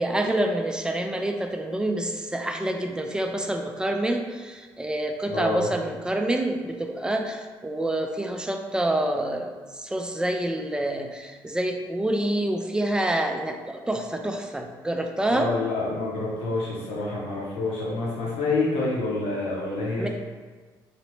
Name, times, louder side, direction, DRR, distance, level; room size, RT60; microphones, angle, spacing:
voice 1, 0.0-9.5 9.8-15.5 20.0-20.1, right 1 dB, 5° right, 4 dB, 0.4 m, -27 dB
voice 2, 5.3-5.7 15.3-20.1, left 2 dB, 70° left, -6 dB, 0.9 m, -27 dB
3.2 x 2.8 x 3.1 m, 1.4 s
hypercardioid pair, 55°, 11 cm